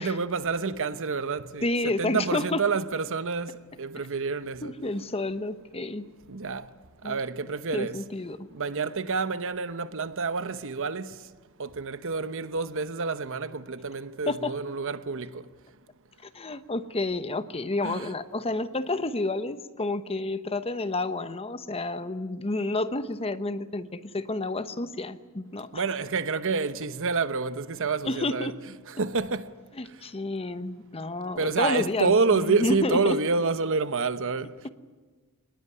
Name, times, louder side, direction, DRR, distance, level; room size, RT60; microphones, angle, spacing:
voice 1, 0.0-1.7 2.0-3.5 3.8-4.7 6.3-6.7 7.0-8.0 8.5-11.1 11.6-15.4 17.8-18.1 25.7-28.5 28.9-29.5 31.4-34.5, right 4 dB, 65° right, 1.0 m, -28 dB
voice 2, 1.6-2.6 4.6-6.1 7.0-7.2 7.7-8.5 14.3-14.5 16.2-25.8 28.0-28.6 29.8-33.3 34.6-34.7, left 2 dB, 25° left, 0.9 m, -30 dB
24.5 x 20.0 x 9.7 m
head